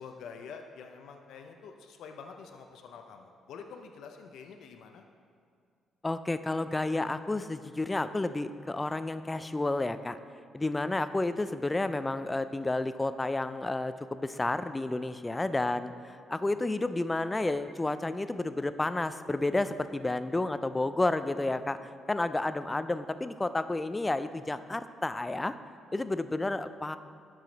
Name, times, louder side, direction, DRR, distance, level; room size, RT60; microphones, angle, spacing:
voice 1, 0.0-5.0, left 5 dB, 75° left, 4 dB, 0.5 m, -47 dB
voice 2, 6.0-10.2 10.5-21.8 22.1-25.5 25.9-27.0, left 2 dB, 15° left, 12 dB, 0.3 m, -31 dB
12.5 x 4.9 x 4.0 m, 2.2 s
cardioid pair, 90°, 0 cm